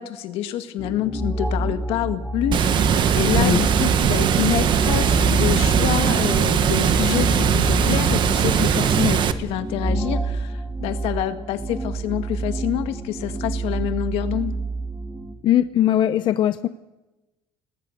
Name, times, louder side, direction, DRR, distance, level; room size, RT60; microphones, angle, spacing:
voice 1, 0.0-14.6, left 12 dB, 80° left, 8 dB, 1.9 m, -27 dB
sound 1, 0.8-15.3, right 1 dB, ahead, 2.5 m, -28 dB
Water, 2.5-9.3, right 8 dB, 50° right, 1.4 m, -20 dB
voice 2, 15.4-16.7, left 11 dB, 55° left, 11 dB, 0.8 m, -20 dB
29.5 x 19.5 x 6.6 m, 1.0 s
cardioid pair, 125°, 10 cm